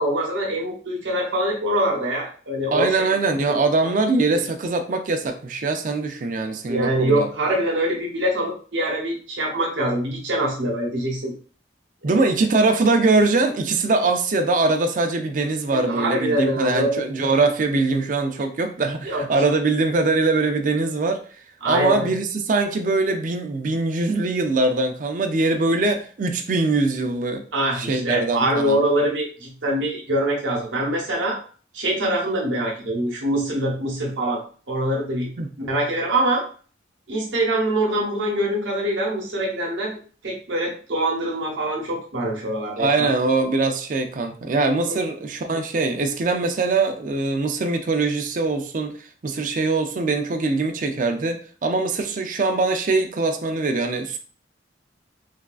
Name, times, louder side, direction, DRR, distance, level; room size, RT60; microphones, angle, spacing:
voice 1, 0.0-3.1 3.5-3.9 4.3-4.4 6.7-11.3 12.1-12.3 15.7-17.0 19.0-19.4 21.6-22.1 27.5-31.4 31.7-34.4 34.7-35.3 35.6-36.4 37.1-40.0 40.2-43.1 44.9-45.0, right 1 dB, 85° right, -2 dB, 0.9 m, -24 dB
voice 2, 2.7-7.3 12.0-21.2 21.7-27.4 27.8-28.8 35.4-35.5 42.8-48.9 49.2-54.2, right 3 dB, 45° right, 5 dB, 0.4 m, -22 dB
3.4 x 2.3 x 2.3 m, 0.42 s
head